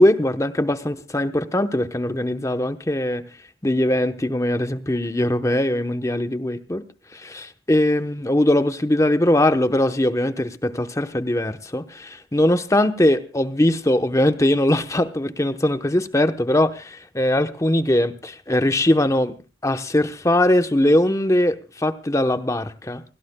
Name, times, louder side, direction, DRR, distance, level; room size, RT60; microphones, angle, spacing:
voice 1, 0.0-3.2 3.6-6.8 7.1-19.3 19.6-23.0, left 1 dB, 20° left, 0.9 m, -21 dB
29.0 x 17.0 x 2.2 m
head